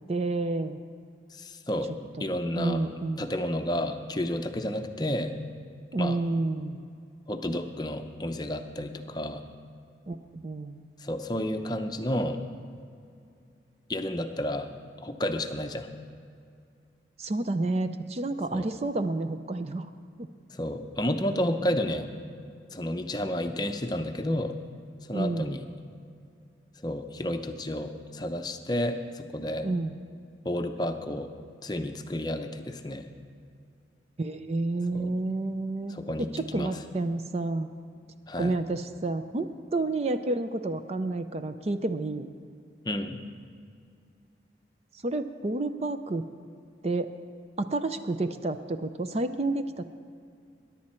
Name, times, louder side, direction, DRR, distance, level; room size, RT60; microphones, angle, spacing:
voice 1, 0.1-0.8 2.2-3.3 5.9-6.8 10.1-10.8 17.2-19.9 20.2-20.3 25.1-25.6 29.6-30.0 34.2-35.9 36.2-37.7 38.4-42.3 45.0-46.2 46.8-47.1 47.6-49.8, right 2 dB, 35° right, 9 dB, 0.5 m, -30 dB
voice 2, 1.3-1.9 2.2-2.8 3.2-5.3 6.0-6.2 7.3-9.4 11.0-12.4 13.9-14.7 15.0-15.9 18.5-18.7 20.5-22.1 22.7-24.6 25.1-25.6 26.8-29.7 30.4-31.3 31.6-33.1 34.9-35.1 35.9-36.3 36.5-36.7 38.3-38.5 42.8-43.2, left 1 dB, 20° left, 6 dB, 0.6 m, -31 dB
21.5 x 10.5 x 4.4 m, 2.4 s
head